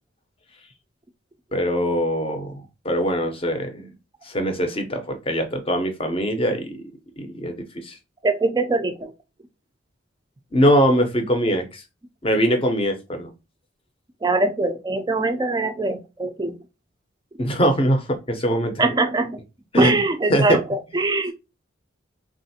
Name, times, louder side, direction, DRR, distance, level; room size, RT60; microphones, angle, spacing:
voice 1, 1.5-3.9 4.2-6.9 7.2-8.0 10.5-11.8 12.2-13.3 17.4-18.9 19.7-20.0 20.3-20.6, equal, 25° left, 0.6 m, -22 dB
voice 2, 8.2-9.1 14.2-16.6 18.8-19.4 19.8-21.3, right 3 dB, 20° right, 0.3 m, -22 dB
3.4 x 2.4 x 2.7 m
head